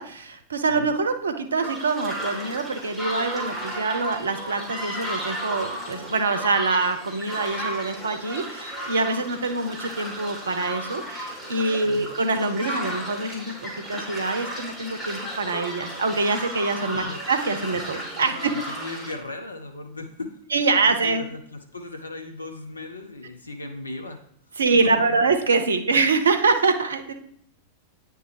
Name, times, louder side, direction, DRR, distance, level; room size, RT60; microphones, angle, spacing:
voice 1, 0.0-18.5 20.5-21.2 24.6-27.1, right 3 dB, 70° right, 8 dB, 0.5 m, -25 dB
sound 1, 1.6-19.1, right 1 dB, 10° left, 1.9 m, -34 dB
voice 2, 16.8-17.2 18.1-20.6 21.0-25.2, left 2 dB, 80° left, 4 dB, 0.5 m, -37 dB
9.3 x 3.3 x 3.2 m, 0.67 s
figure-of-eight pair, 90°, 0 cm